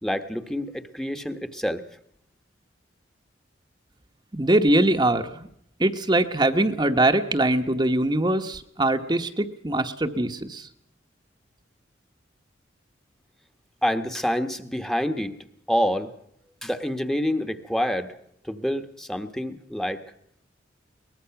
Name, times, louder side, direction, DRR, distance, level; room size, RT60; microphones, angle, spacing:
voice 1, 0.0-1.8 13.8-15.3 15.7-16.1 16.6-18.1 18.4-20.0, equal, 5° left, 7 dB, 1.1 m, -27 dB
voice 2, 4.3-5.5 5.8-10.7, right 1 dB, 25° right, 5 dB, 1.1 m, -22 dB
23.0 x 20.0 x 5.8 m, 0.73 s
head